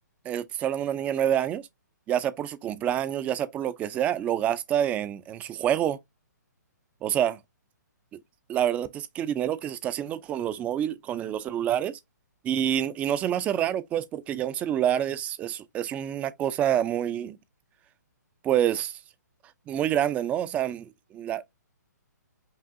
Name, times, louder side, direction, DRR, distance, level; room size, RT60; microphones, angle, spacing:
voice 1, 0.2-1.6 2.1-6.0 7.0-7.4 8.5-12.0 12.4-17.4 18.4-19.0 19.7-21.5, right 10 dB, 15° right, 0.4 m, -27 dB
5.4 x 2.6 x 2.5 m
hypercardioid pair, 145°, 10 cm